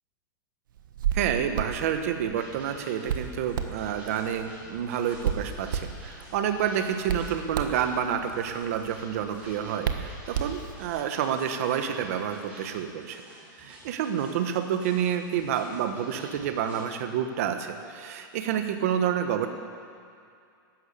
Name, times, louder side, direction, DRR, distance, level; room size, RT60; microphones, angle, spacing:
Hands, 0.8-11.0, right 8 dB, 70° right, 1.3 m, -34 dB
voice 1, 1.1-13.2 13.6-19.5, right 8 dB, 45° right, 7 dB, 1.2 m, -29 dB
sound 1, 2.3-16.8, equal, 10° right, 4.6 m, -50 dB
13.0 x 11.0 x 8.4 m, 2.3 s
supercardioid pair, 180°, 11 cm